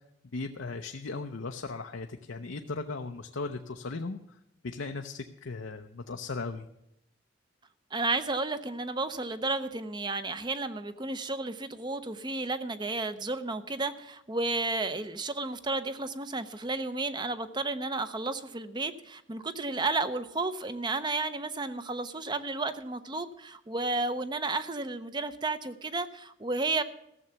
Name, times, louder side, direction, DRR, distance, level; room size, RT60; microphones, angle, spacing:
voice 1, 0.3-4.2 4.6-6.7, left 3 dB, 85° left, 5 dB, 0.7 m, -37 dB
voice 2, 7.9-26.8, right 3 dB, 25° right, 11 dB, 0.6 m, -32 dB
15.0 x 7.0 x 6.9 m, 0.81 s
head